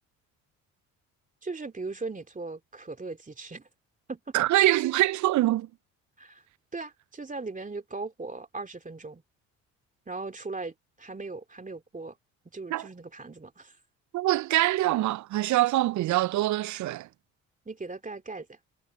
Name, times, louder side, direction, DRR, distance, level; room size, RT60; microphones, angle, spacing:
voice 1, 1.4-3.7 4.1-4.3 6.2-6.4 6.7-9.2 10.1-12.2 12.5-13.8 17.6-18.6, right 3 dB, 20° right, 2.9 m, -38 dB
voice 2, 4.3-5.7 12.7-12.9 14.1-17.1, right 16 dB, 50° right, 0.5 m, -24 dB
hypercardioid pair, 55°, 37 cm